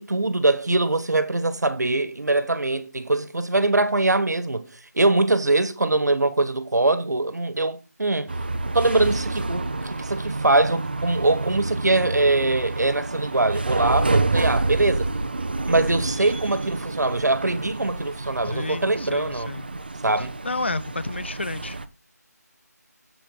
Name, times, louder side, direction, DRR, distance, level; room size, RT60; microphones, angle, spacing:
voice 1, 0.0-4.7 4.9-8.3 8.6-15.1 15.7-19.6 20.0-20.3, right 2 dB, 75° right, 1.5 m, -22 dB
sound 1, 8.3-21.9, right 2 dB, 35° right, 0.7 m, -28 dB
voice 2, 18.4-19.7 20.4-21.8, left 2 dB, 40° left, 0.5 m, -30 dB
8.2 x 7.4 x 3.9 m
figure-of-eight pair, 175°, 9 cm